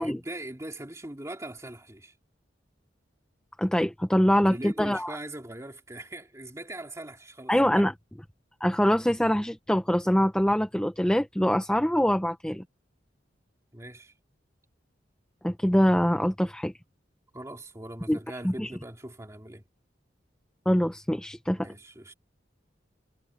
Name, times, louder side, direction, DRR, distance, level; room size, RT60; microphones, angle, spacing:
voice 1, 0.0-2.1 4.3-7.8 13.7-14.1 17.3-19.6 21.6-22.1, right 1 dB, 15° right, 2.3 m, -41 dB
voice 2, 3.6-5.1 7.5-7.9 8.6-12.6 15.4-16.7 18.1-18.2 18.4-18.7 20.7-21.6, equal, 5° left, 0.7 m, -24 dB
head